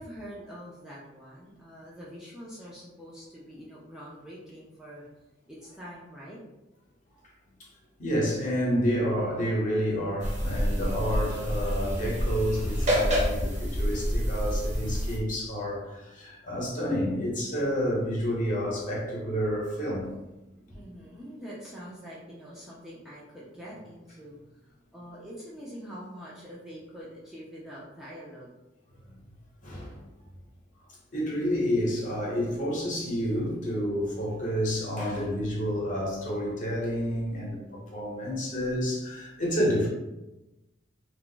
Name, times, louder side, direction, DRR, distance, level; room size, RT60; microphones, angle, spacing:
voice 1, 0.0-5.0 5.5-6.4 20.4-28.5, equal, ahead, -8 dB, 0.4 m, -45 dB
voice 2, 8.0-20.1 29.0-29.1 29.6-30.0 31.1-39.9, equal, 40° left, -4 dB, 0.8 m, -29 dB
sound 1, 10.2-15.2, equal, 40° right, 0.7 m, -28 dB
2.3 x 2.0 x 3.8 m, 1.0 s
head